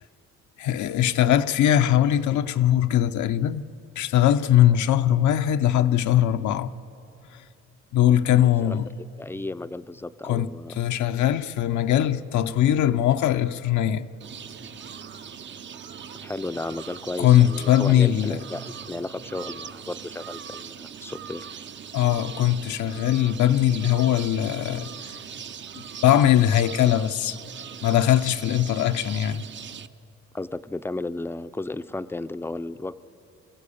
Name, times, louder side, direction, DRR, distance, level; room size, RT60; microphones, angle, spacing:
voice 1, 0.6-3.6 4.0-6.7 7.3-7.4 7.9-8.9 10.2-10.5 10.8-14.1 17.2-18.4 21.9-24.9 26.0-27.4 27.8-29.4, left 11 dB, 75° left, 0.7 m, -21 dB
voice 2, 8.4-8.8 9.2-10.7 16.2-21.5 30.3-32.9, left 2 dB, 10° left, 0.5 m, -34 dB
sound 1, 14.2-29.9, right 7 dB, 40° right, 0.6 m, -40 dB
24.0 x 14.5 x 8.5 m
cardioid pair, 90°, 30 cm